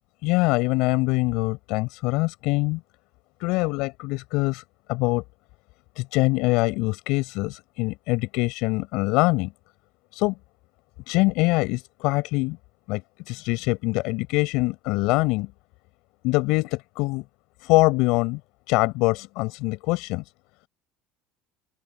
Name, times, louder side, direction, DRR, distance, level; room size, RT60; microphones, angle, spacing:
voice 1, 0.2-2.8 3.4-4.6 4.9-5.2 6.0-9.5 10.1-10.3 11.1-12.6 12.9-13.0 13.3-15.5 16.2-17.2 17.6-18.4 18.7-20.2, left 24 dB, 75° left, 7.1 m, -23 dB
open air
supercardioid pair, 100°, 0 cm